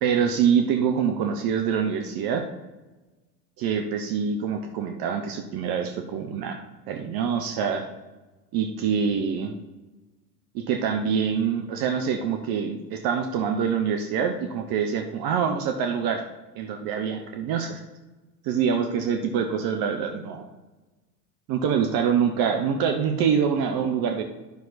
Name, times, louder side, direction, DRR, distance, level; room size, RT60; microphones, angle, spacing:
voice 1, 0.0-2.5 3.6-6.6 6.9-7.8 8.5-9.6 10.5-16.2 16.6-17.8 18.5-20.4 21.5-24.2, right 7 dB, 45° right, 5 dB, 1.0 m, -25 dB
9.7 x 6.3 x 4.1 m, 1.2 s
hypercardioid pair, 75°, 49 cm